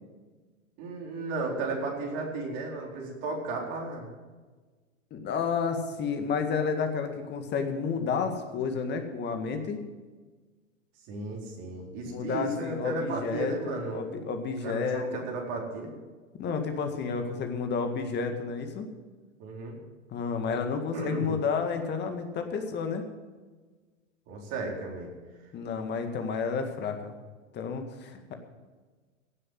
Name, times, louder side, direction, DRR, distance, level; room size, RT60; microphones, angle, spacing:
voice 1, 0.8-4.1 11.1-14.0 14.6-15.9 19.4-19.8 20.9-21.4 24.3-25.1, right 2 dB, 45° right, -1 dB, 4.2 m, -34 dB
voice 2, 5.1-9.8 12.1-15.3 16.4-18.9 20.1-23.0 25.5-27.1 27.5-28.3, left 5 dB, 25° left, 6 dB, 1.9 m, -31 dB
16.5 x 7.7 x 7.6 m, 1.4 s
figure-of-eight pair, 95°, 38 cm